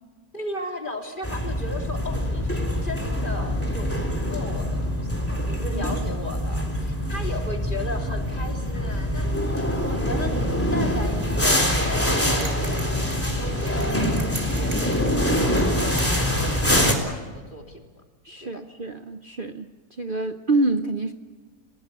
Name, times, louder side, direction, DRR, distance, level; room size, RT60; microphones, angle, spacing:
voice 1, 0.3-10.3 10.7-15.1 15.6-17.8 18.4-18.6, left 1 dB, 30° left, 2 dB, 3.6 m, -36 dB
sound 1, 1.2-16.9, equal, 10° left, 3.6 m, -24 dB
sound 2, 12.4-16.8, right 5 dB, 65° right, 3.8 m, -41 dB
voice 2, 18.2-19.7 20.0-21.1, right 2 dB, 40° right, 7 dB, 0.9 m, -26 dB
29.5 x 18.5 x 8.5 m, 1.3 s
omnidirectional pair, 1.6 m